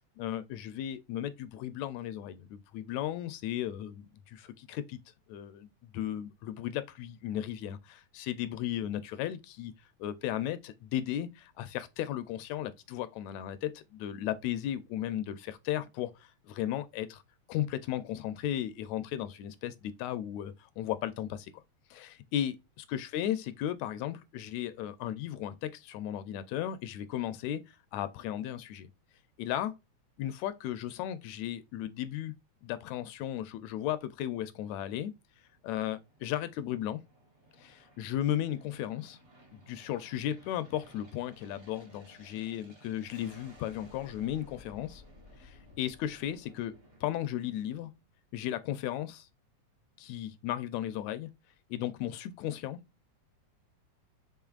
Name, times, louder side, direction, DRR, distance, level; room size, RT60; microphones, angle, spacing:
voice 1, 0.2-5.0 5.3-9.7 10.0-17.2 17.5-21.6 21.9-22.6 22.9-28.9 29.4-29.8 30.2-32.3 32.6-35.1 35.6-37.0 37.6-39.2 39.5-45.0 45.4-46.7 47.0-47.9 48.3-49.3 50.0-51.3 51.7-52.8, left 11 dB, 80° left, 1.7 m, -35 dB
Aircraft, 35.3-48.0, left 1 dB, 30° right, 1.1 m, -57 dB
5.6 x 3.8 x 2.3 m
omnidirectional pair, 3.4 m